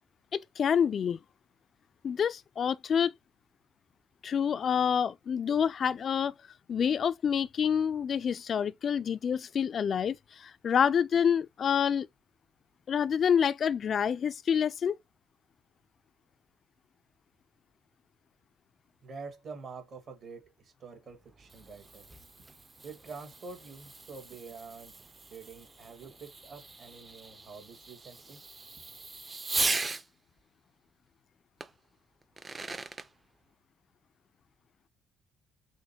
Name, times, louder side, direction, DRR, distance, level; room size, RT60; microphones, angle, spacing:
voice 1, 0.3-1.2 2.0-3.1 4.2-6.3 6.7-12.1 12.9-15.0, left 7 dB, 50° left, 0.4 m, -27 dB
voice 2, 19.0-22.1 22.8-25.0 25.3-28.4, right 4 dB, 50° right, 1.7 m, -47 dB
Fireworks, 21.2-30.1 31.6-31.7 32.2-33.1, right 3 dB, 25° right, 0.6 m, -38 dB
6.3 x 2.1 x 2.8 m
cardioid pair, 85°, 0 cm